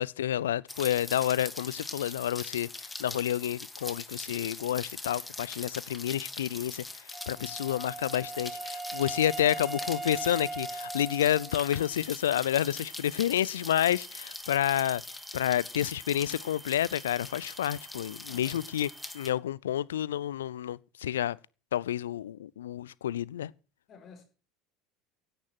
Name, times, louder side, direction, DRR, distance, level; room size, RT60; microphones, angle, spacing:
voice 1, 0.0-2.7 3.0-6.8 7.3-15.0 15.3-18.9 19.1-21.4 21.7-23.5, left 11 dB, 75° left, 0.6 m, -29 dB
Rain, 0.7-19.3, left 2 dB, 15° left, 2.7 m, -42 dB
Wind instrument woodwind instrument, 7.1-11.9, right 3 dB, 15° right, 2.9 m, -39 dB
voice 2, 7.4-7.8 18.3-18.7 23.9-24.2, left 7 dB, 40° left, 5.1 m, -52 dB
sound 1, 11.6-19.3, right 3 dB, 60° right, 5.6 m, -53 dB
16.0 x 10.0 x 5.8 m
figure-of-eight pair, 70°, 0 cm